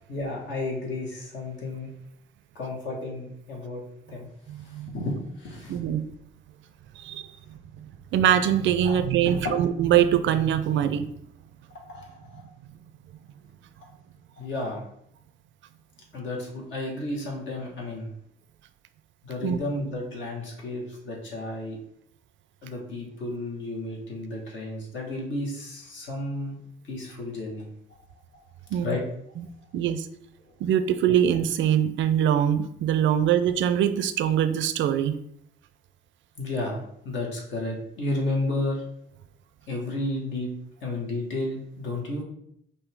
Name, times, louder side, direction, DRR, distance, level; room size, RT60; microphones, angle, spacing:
voice 1, 0.1-1.9 2.5-3.8 4.1-4.3 4.6-5.8 8.8-8.9 11.9-12.5 14.4-14.8 16.1-18.1 19.2-21.8 22.6-26.6 26.8-27.6 28.8-29.0 36.4-38.8 39.7-40.5 40.8-42.2, left 2 dB, 70° left, -2 dB, 1.5 m, -32 dB
voice 2, 4.5-5.1 5.7-6.0 7.0-7.3 7.8-11.1 19.4-19.6 28.7-28.9 29.4-29.5 29.7-30.1 30.6-35.1, right 9 dB, 70° right, 11 dB, 0.4 m, -23 dB
5.4 x 2.7 x 3.4 m, 0.72 s
cardioid pair, 90°, 20 cm